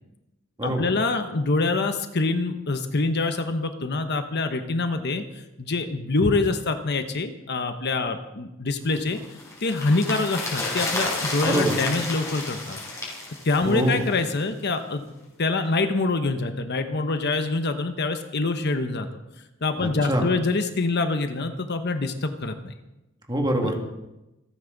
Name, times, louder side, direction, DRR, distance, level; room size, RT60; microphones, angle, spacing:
voice 1, 0.6-5.2 5.6-9.2 9.6-12.8 13.4-15.0 15.4-19.1 19.6-22.7 23.6-23.7, left 3 dB, 55° left, 7 dB, 1.1 m, -25 dB
sound 1, 8.9-14.4 14.6-14.7, left 2 dB, 15° left, 5.3 m, -31 dB
voice 2, 13.7-14.0 19.8-20.2 23.3-23.9, right 1 dB, 20° right, 2 dB, 2.2 m, -24 dB
27.0 x 9.5 x 4.0 m, 0.96 s
head